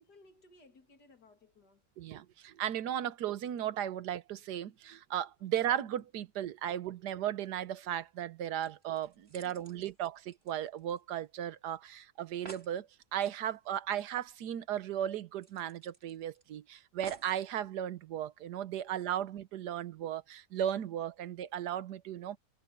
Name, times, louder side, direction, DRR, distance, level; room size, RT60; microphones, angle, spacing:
voice 1, 0.0-1.9 9.3-9.9, left 3 dB, 85° left, 3.2 m, -61 dB
voice 2, 2.0-22.4, right 10 dB, 85° right, 1.4 m, -36 dB
sound 1, 8.6-11.3 11.5-11.6 11.9-12.0 12.2-12.8 14.3-14.4 14.7-14.8 15.4-16.4 17.0-17.4 18.2-18.3, right 4 dB, 40° right, 2.5 m, -52 dB
omnidirectional pair, 1.7 m